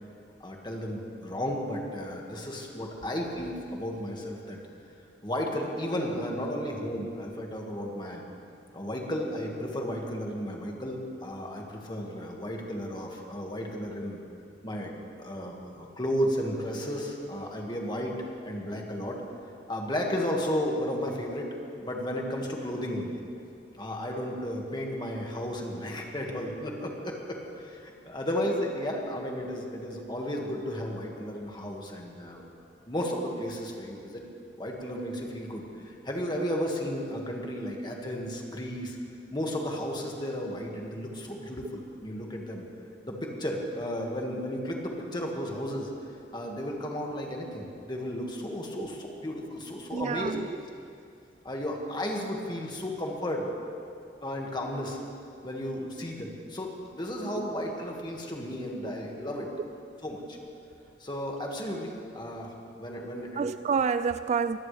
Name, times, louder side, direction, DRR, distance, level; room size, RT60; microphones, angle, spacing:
voice 1, 0.4-4.6 5.2-8.2 8.7-14.2 14.6-19.2 19.7-23.2 23.7-32.4 32.9-34.2 34.6-39.0 39.3-42.7 43.0-45.9 46.3-50.3 51.4-53.5 54.2-55.0 55.4-59.5 60.0-60.4 61.0-62.5 62.8-63.4, equal, 25° left, 0 dB, 2.0 m, -33 dB
voice 2, 49.9-50.5 58.8-58.9 63.4-64.6, right 5 dB, 35° right, 12 dB, 0.3 m, -28 dB
23.5 x 16.5 x 3.4 m, 2.5 s
head